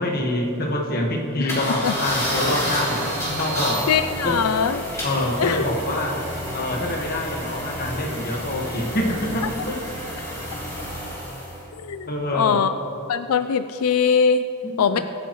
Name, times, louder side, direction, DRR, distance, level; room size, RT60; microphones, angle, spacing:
voice 1, 0.0-3.0 3.4-3.9 4.2-4.4 5.0-6.2 6.5-9.7 12.1-12.6 14.6-15.0, left 1 dB, 45° left, 0 dB, 1.6 m, -25 dB
sound 1, 1.5-11.6, equal, 15° left, 3.2 m, -30 dB
sound 2, 2.7-4.6, right 10 dB, 80° right, 1.3 m, -38 dB
voice 2, 3.9-4.8 5.4-5.7 11.8-12.7 13.1-14.5 14.8-15.0, left 6 dB, 90° left, 11 dB, 0.4 m, -21 dB
23.0 x 9.1 x 3.1 m, 2.9 s
head